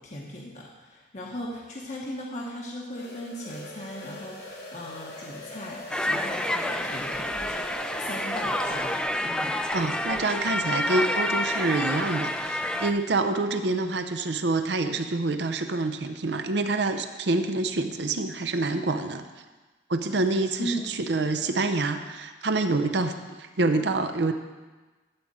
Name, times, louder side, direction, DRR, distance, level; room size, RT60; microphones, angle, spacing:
voice 1, 0.0-9.6 20.6-21.0, equal, 40° left, -2 dB, 0.9 m, -38 dB
sound 1, 2.9-9.1, equal, 80° left, 2.6 m, -41 dB
sound 2, 5.9-12.9, left 1 dB, 5° left, 0.4 m, -28 dB
voice 2, 9.7-19.2 19.9-24.3, right 2 dB, 75° right, 8 dB, 0.7 m, -27 dB
12.0 x 4.1 x 7.4 m, 1.2 s
head